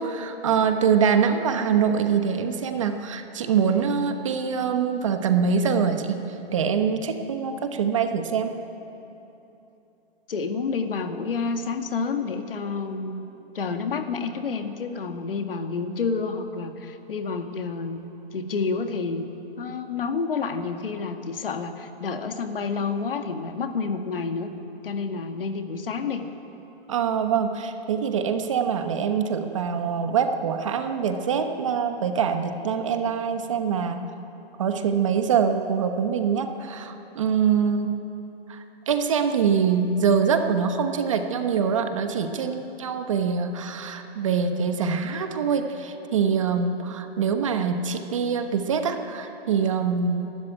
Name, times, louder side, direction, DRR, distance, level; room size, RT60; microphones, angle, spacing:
voice 1, 0.0-6.2 6.5-8.6 26.9-34.1 34.6-38.0 38.5-50.3, right 6 dB, 30° right, 7 dB, 1.1 m, -24 dB
voice 2, 10.3-13.2 13.5-18.1 18.3-19.3 19.6-24.5 24.8-26.3, left 4 dB, 60° left, 6 dB, 2.0 m, -29 dB
27.5 x 13.0 x 8.9 m, 3.0 s
hypercardioid pair, 175°, 31 cm